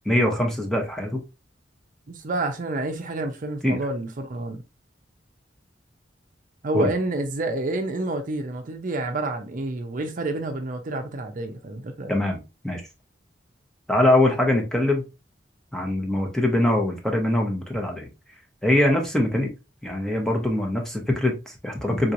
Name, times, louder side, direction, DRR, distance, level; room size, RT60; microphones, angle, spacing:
voice 1, 0.0-1.2 3.6-3.8 6.7-6.9 12.1-12.8 13.9-15.0 15.7-18.1 18.6-19.5 19.8-22.1, left 1 dB, 5° left, 0.8 m, -23 dB
voice 2, 2.1-4.6 6.6-12.1, right 2 dB, 45° right, 0.6 m, -29 dB
3.8 x 3.0 x 2.5 m
head